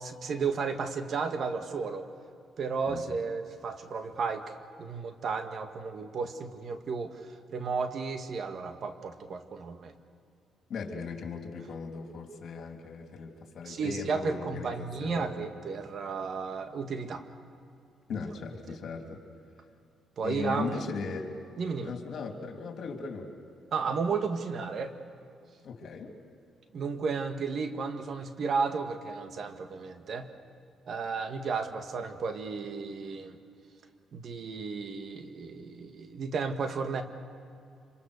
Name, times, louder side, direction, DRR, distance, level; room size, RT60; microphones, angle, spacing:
voice 1, 0.0-2.1 2.6-4.4 4.8-9.9 13.6-17.2 18.7-18.8 20.2-20.8 21.6-21.9 23.7-24.9 26.7-30.3 30.9-33.4 34.1-37.0, right 5 dB, 55° right, 7 dB, 1.8 m, -33 dB
voice 2, 10.7-15.4 18.1-19.2 20.2-21.3 21.8-23.3 25.6-26.1, left 4 dB, 60° left, 3 dB, 3.2 m, -38 dB
26.5 x 25.0 x 6.7 m, 2.5 s
cardioid pair, 90°, 0 cm